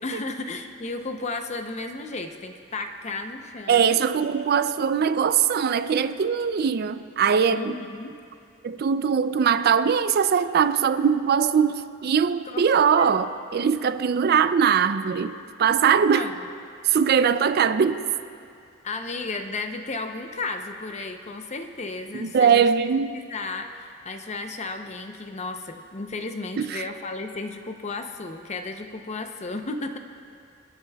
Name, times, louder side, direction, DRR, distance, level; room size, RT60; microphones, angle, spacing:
voice 1, 0.0-4.0 7.5-8.2 12.5-13.2 16.1-16.3 18.8-22.7 23.1-30.0, left 3 dB, 35° left, 0.6 m, -34 dB
voice 2, 3.7-7.7 8.6-13.3 13.5-16.3 16.8-18.1 22.1-23.2 26.6-26.8, right 7 dB, 50° right, 0.4 m, -21 dB
29.5 x 10.5 x 2.3 m
head